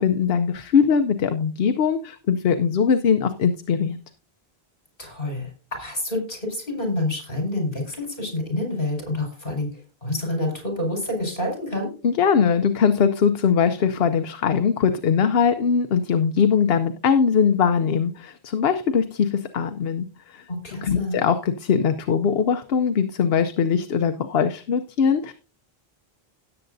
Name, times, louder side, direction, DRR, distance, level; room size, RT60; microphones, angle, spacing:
voice 1, 0.0-4.0 12.0-20.4 20.8-25.3, left 6 dB, 75° left, 8 dB, 0.9 m, -21 dB
voice 2, 5.0-11.9 20.5-21.2, left 1 dB, 60° left, 1 dB, 5.3 m, -28 dB
17.0 x 7.8 x 2.6 m, 0.35 s
omnidirectional pair, 1.0 m